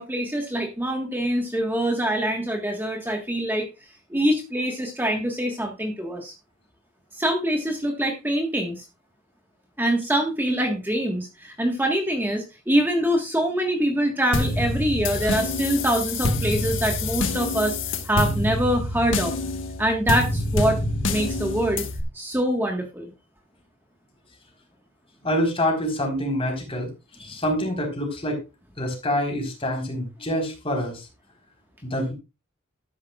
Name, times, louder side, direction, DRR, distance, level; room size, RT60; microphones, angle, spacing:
voice 1, 0.0-3.7 4.1-6.3 7.2-8.8 9.8-17.8 18.0-19.3 19.8-20.8 21.1-21.8 22.1-23.1, right 1 dB, 10° right, 2 dB, 1.5 m, -24 dB
sound 1, 14.3-22.0, left 2 dB, 70° left, 1.5 m, -26 dB
voice 2, 25.2-26.9 27.2-28.4 28.8-31.0 31.8-32.1, equal, 30° left, 2 dB, 4.1 m, -26 dB
12.5 x 10.5 x 2.4 m, 0.26 s
head